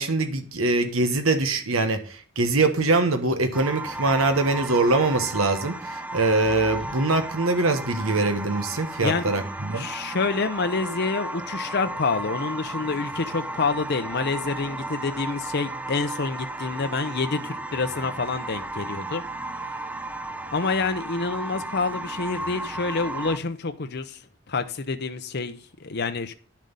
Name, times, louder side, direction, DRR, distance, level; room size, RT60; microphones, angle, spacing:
voice 1, 0.0-9.9, right 2 dB, 80° right, 7 dB, 1.3 m, -23 dB
sound 1, 3.5-23.4, right 2 dB, 5° right, 0.7 m, -34 dB
sound 2, 6.4-7.0, equal, 25° right, 2.4 m, -43 dB
voice 2, 9.7-20.0 20.5-24.2 24.5-26.3, left 4 dB, 50° left, 8 dB, 0.8 m, -28 dB
11.0 x 7.5 x 5.4 m, 0.39 s
head